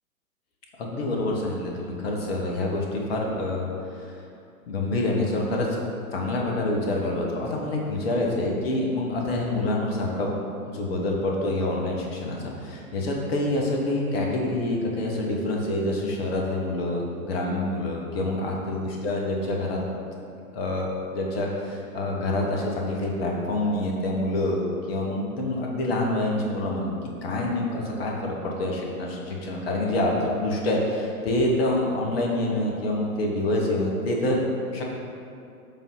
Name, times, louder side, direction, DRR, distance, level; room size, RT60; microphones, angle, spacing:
voice 1, 0.8-3.7 4.0-4.2 4.7-5.7 6.1-10.3 10.6-19.8 20.5-24.6 24.9-26.9 27.2-34.4 34.7-34.8, left 1 dB, 40° left, -1 dB, 1.1 m, -26 dB
7.2 x 2.7 x 5.4 m, 2.5 s
figure-of-eight pair, 115°, 44 cm